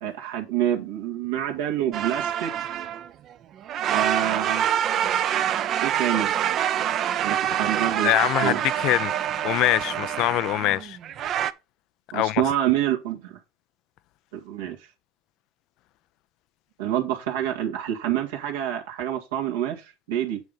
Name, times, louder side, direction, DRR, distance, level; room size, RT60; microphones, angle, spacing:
voice 1, 0.0-2.5 3.8-4.7 5.8-6.3 7.2-8.1 8.4-8.6 12.1-13.4 14.3-14.8 16.8-20.4, right 11 dB, 80° right, 1.9 m, -27 dB
sound 1, 1.9-3.3 3.6-11.5, right 10 dB, 50° right, 0.6 m, -26 dB
voice 2, 8.0-9.1 9.4-11.0 12.1-12.4, left 16 dB, 60° left, 0.5 m, -23 dB
9.2 x 3.8 x 5.4 m
hypercardioid pair, 85°, 0 cm